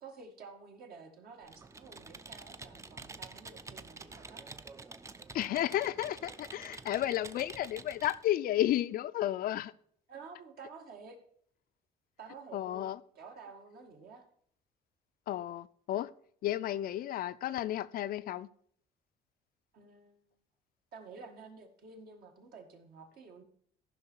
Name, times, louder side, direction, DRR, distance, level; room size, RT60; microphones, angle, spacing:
voice 1, 0.0-4.4 10.1-11.2 12.2-14.3 19.7-20.2 20.9-23.4, right 4 dB, 65° right, 1.9 m, -51 dB
Computer keyboard, 1.4-8.3, right 3 dB, 15° right, 0.5 m, -48 dB
voice 2, 5.3-9.7 12.5-13.0 15.3-16.1 16.4-18.5, left 13 dB, 60° left, 0.5 m, -32 dB
14.5 x 5.7 x 4.5 m
cardioid pair, 110°, 17 cm